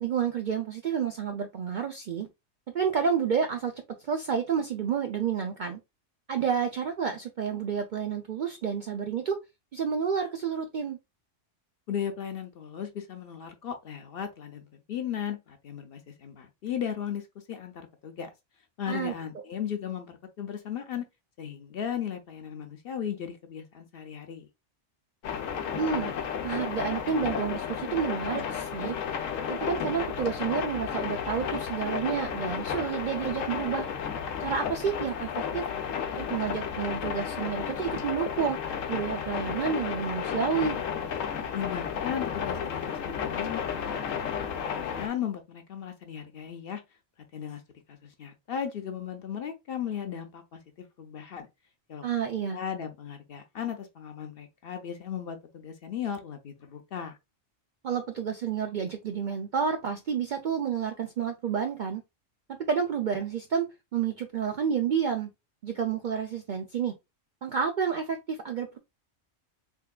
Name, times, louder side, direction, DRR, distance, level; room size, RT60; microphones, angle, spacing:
voice 1, 0.0-2.3 2.7-5.8 6.3-9.4 9.7-11.0 18.9-19.1 25.8-26.1 26.4-29.0 29.5-33.9 34.4-35.7 36.1-40.8 52.0-52.6 57.8-62.0 62.5-65.3 65.6-66.9 67.4-68.8, right 7 dB, 65° right, 0.5 m, -30 dB
voice 2, 11.9-18.3 18.8-21.0 21.4-24.5 41.5-46.8 47.3-47.6 47.9-51.5 51.9-57.2, left 8 dB, 60° left, 0.7 m, -36 dB
sound 1, 25.2-45.1, left 7 dB, 90° left, 1.0 m, -33 dB
3.6 x 3.3 x 2.2 m
omnidirectional pair, 1.3 m